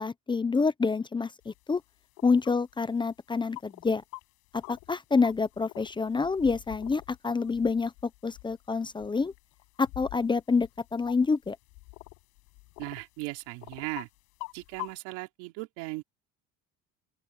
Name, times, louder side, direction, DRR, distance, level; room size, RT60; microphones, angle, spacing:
voice 1, 0.0-1.8 2.2-4.0 4.5-9.3 9.8-11.6, left 4 dB, 15° left, 0.7 m, -27 dB
sound 1, 1.4-1.5 2.2-2.6 3.6-4.2 4.5-4.9 5.2-13.0 13.4-14.0 14.4-14.9, left 31 dB, 85° left, 7.9 m, -45 dB
voice 2, 12.8-14.1 14.5-16.0, right 23 dB, 85° right, 3.8 m, -37 dB
open air
cardioid pair, 120°, 30 cm